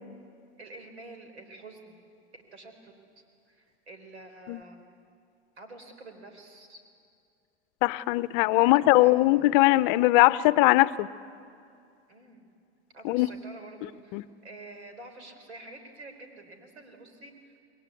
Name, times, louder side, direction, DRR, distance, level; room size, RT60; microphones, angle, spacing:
voice 1, 0.6-2.1 2.5-2.9 3.5-4.9 5.6-6.8 8.6-8.7 9.0-9.4 12.1-12.5 12.9-17.6, right 2 dB, 90° right, 5 dB, 4.3 m, -47 dB
voice 2, 7.8-11.1 13.0-13.3 14.1-14.2, left 18 dB, 50° left, 18 dB, 0.7 m, -21 dB
27.5 x 21.0 x 8.3 m, 2.4 s
hypercardioid pair, 100°, 32 cm